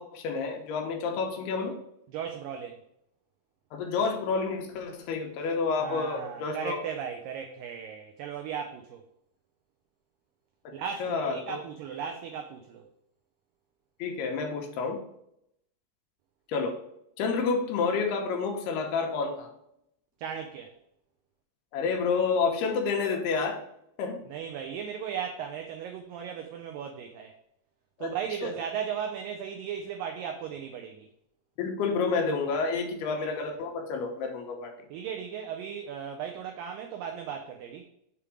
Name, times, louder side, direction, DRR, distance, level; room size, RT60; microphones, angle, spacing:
voice 1, 0.0-1.8 3.7-6.8 11.0-11.6 14.0-15.0 16.5-16.8 17.2-19.5 21.7-23.6 24.0-24.2 28.0-28.1 28.4-28.5 31.6-34.7, left 4 dB, 75° left, 2.9 m, -29 dB
voice 2, 2.1-2.8 5.8-9.0 10.7-12.8 20.2-20.8 24.3-27.4 28.0-31.1 33.1-33.3 34.9-37.8, right 7 dB, 90° right, 1.9 m, -36 dB
7.1 x 3.5 x 4.8 m
omnidirectional pair, 4.7 m